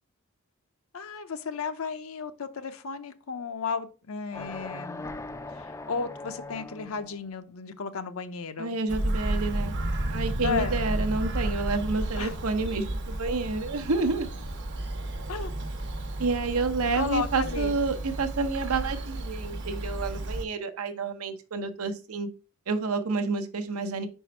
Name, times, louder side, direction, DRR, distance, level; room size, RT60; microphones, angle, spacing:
voice 1, 0.9-5.1 5.5-8.8 10.4-10.8 12.2-12.4 15.3-15.5 16.9-17.8, left 5 dB, 70° left, 10 dB, 0.6 m, -34 dB
sound 1, 4.3-7.2, left 2 dB, 15° left, 0.3 m, -40 dB
voice 2, 8.6-9.7 10.1-14.3 16.2-22.3 22.7-24.1, right 3 dB, 85° right, 7 dB, 0.8 m, -29 dB
Bird vocalization bird call bird song, 8.9-20.4, right 1 dB, 55° right, 0.9 m, -32 dB
5.0 x 4.5 x 4.4 m, 0.35 s
head